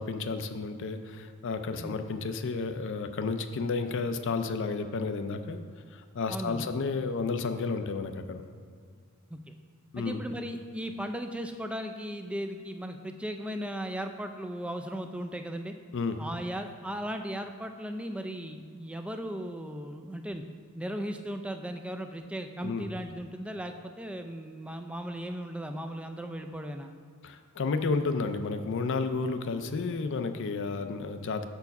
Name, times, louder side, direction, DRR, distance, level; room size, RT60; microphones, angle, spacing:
voice 1, 0.0-5.6 5.9-8.4 9.9-10.2 15.9-16.2 22.6-22.9 27.2-31.5, left 4 dB, 55° left, 8 dB, 0.4 m, -32 dB
voice 2, 6.3-6.7 9.3-9.5 10.0-15.7 16.2-20.4 20.8-26.9, equal, 5° right, 6 dB, 0.3 m, -37 dB
7.0 x 4.6 x 5.3 m, 2.1 s
head